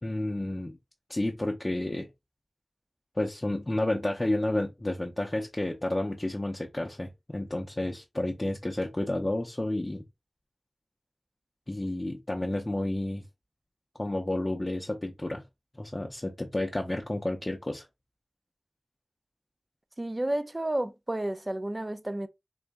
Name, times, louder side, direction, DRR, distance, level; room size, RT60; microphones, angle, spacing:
voice 1, 0.0-0.8 1.1-2.1 3.2-10.0 11.7-13.2 14.0-15.4 15.7-17.9, left 1 dB, 30° left, 0.5 m, -31 dB
voice 2, 20.0-22.3, right 1 dB, 30° right, 0.4 m, -31 dB
3.9 x 2.5 x 3.4 m
wide cardioid pair, 75°, 0 cm